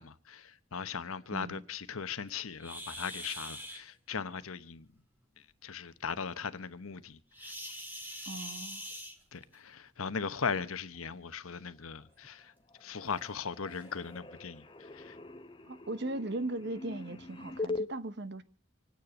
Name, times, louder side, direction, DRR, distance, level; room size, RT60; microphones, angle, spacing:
voice 1, 0.0-4.9 5.4-7.5 9.3-12.5 12.8-15.2, left 6 dB, 80° left, 0.9 m, -39 dB
voice 2, 1.3-1.6 8.3-8.8 15.7-18.4, right 2 dB, 50° right, 0.9 m, -38 dB
sound 1, 2.6-3.8 7.3-9.6 10.8-11.0 11.6-11.7 12.2-12.3 13.1-13.2 13.7-13.9, equal, 10° right, 1.9 m, -43 dB
sound 2, 12.0-12.4 12.7-17.9, left 3 dB, 20° left, 0.9 m, -42 dB
26.5 x 9.6 x 5.2 m
head